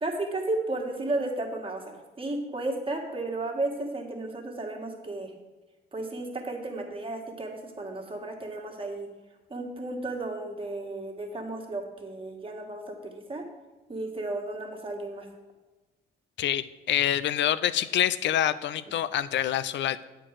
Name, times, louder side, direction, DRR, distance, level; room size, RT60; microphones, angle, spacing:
voice 1, 0.0-5.3 5.9-9.1 9.5-13.4 13.9-15.3, right 2 dB, 25° right, 1 dB, 1.8 m, -33 dB
voice 2, 16.4-20.0, left 11 dB, 65° left, 16 dB, 0.4 m, -26 dB
8.5 x 4.6 x 7.4 m, 1.2 s
cardioid pair, 90°, 20 cm